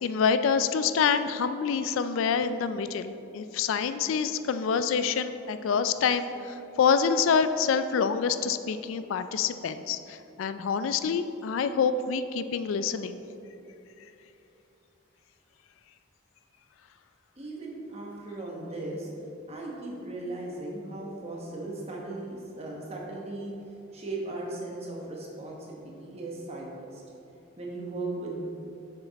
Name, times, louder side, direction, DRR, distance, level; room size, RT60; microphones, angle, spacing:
voice 1, 0.0-13.2, left 6 dB, 75° left, 11 dB, 0.3 m, -27 dB
voice 2, 17.4-19.1 19.5-23.6 23.9-27.0 27.6-28.4, right 2 dB, 30° right, -2 dB, 1.1 m, -37 dB
6.6 x 6.1 x 4.1 m, 2.9 s
head